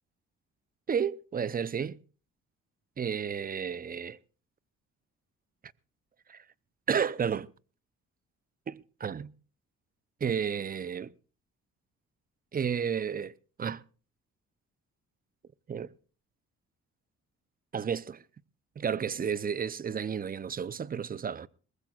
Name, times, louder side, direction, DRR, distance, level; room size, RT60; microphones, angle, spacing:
voice 1, 0.9-2.0 3.0-4.2 6.3-6.4 6.9-7.5 8.7-9.3 10.2-11.1 12.5-13.8 15.7-15.9 17.7-18.2 18.8-21.5, right 7 dB, 30° right, 0.6 m, -32 dB
22.0 x 19.5 x 2.4 m
cardioid pair, 90°, 30 cm